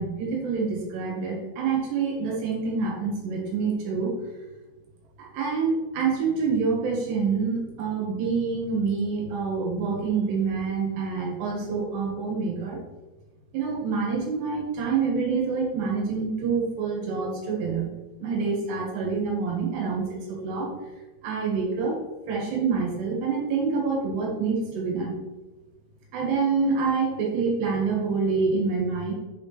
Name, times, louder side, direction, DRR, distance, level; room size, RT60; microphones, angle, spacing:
voice 1, 0.0-4.1 5.2-12.8 13.5-17.9 18.2-20.7 21.2-22.0 22.3-25.2 26.1-29.1, right 5 dB, 75° right, -2 dB, 3.5 m, -26 dB
8.7 x 4.3 x 3.3 m, 1.2 s
omnidirectional pair, 5.0 m